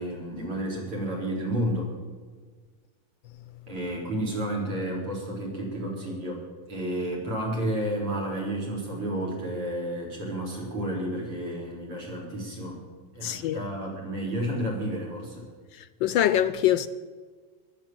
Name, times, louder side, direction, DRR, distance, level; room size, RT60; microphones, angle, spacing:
voice 1, 0.0-1.9 3.7-12.8 13.1-15.4, right 1 dB, 85° right, 5.1 m, -31 dB
voice 2, 13.2-13.6 16.0-16.9, left 11 dB, 75° left, 1.2 m, -23 dB
15.0 x 11.5 x 7.5 m
omnidirectional pair, 2.4 m